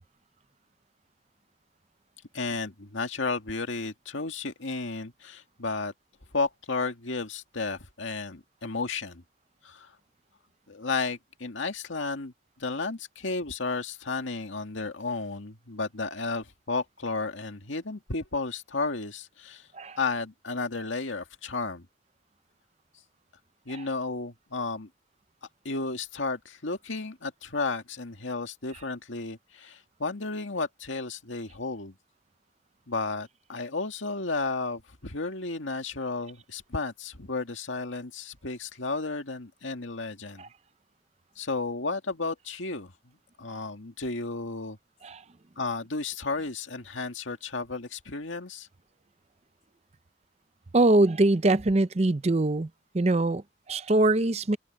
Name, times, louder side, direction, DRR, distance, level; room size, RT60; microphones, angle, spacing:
voice 1, 2.3-5.9 6.3-9.2 9.6-10.0 10.7-19.7 20.0-21.9 23.7-24.9 25.6-32.0 32.9-40.4 41.4-42.9 43.4-44.8 45.6-48.7, left 3 dB, 90° left, 2.1 m, -33 dB
voice 2, 50.7-52.7 52.9-54.6, right 2 dB, 35° right, 0.6 m, -23 dB
head